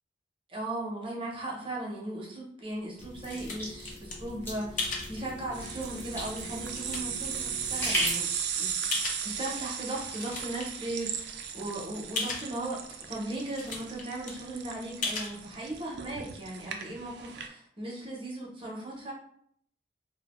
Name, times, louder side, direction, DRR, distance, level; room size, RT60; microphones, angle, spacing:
voice 1, 0.5-8.3 8.6-8.7 9.2-12.8 13.1-19.1, right 1 dB, 30° right, -2 dB, 0.6 m, -37 dB
sound 1, 2.6-4.1 4.8-5.1 5.8-5.9 6.4-7.3 7.9-8.0 8.9-9.5 9.9-10.6 11.0-11.1 11.4-11.5 12.2-12.5 13.1-13.2 13.4-14.0 14.3-14.4 15.0-15.3, left 3 dB, 50° left, 0.5 m, -35 dB
sound 2, 3.0-8.1, equal, 15° left, 0.7 m, -37 dB
sound 3, 5.5-17.5, right 8 dB, 65° right, 0.3 m, -37 dB
2.4 x 2.0 x 2.9 m, 0.66 s
head